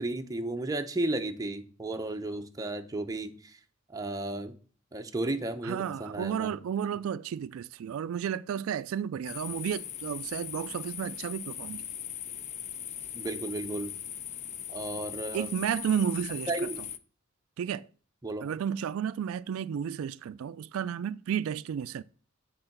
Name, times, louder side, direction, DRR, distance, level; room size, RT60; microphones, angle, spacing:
voice 1, 0.0-3.6 3.9-4.5 4.9-6.6 13.1-13.9 14.7-15.5 16.5-16.8 18.2-18.5, right 2 dB, 15° right, 0.6 m, -33 dB
voice 2, 5.6-11.8 15.3-16.7 17.6-17.9 18.4-22.0, right 8 dB, 85° right, 0.3 m, -32 dB
sound 1, 9.2-17.0, left 10 dB, 35° left, 0.4 m, -40 dB
7.8 x 3.8 x 5.8 m
head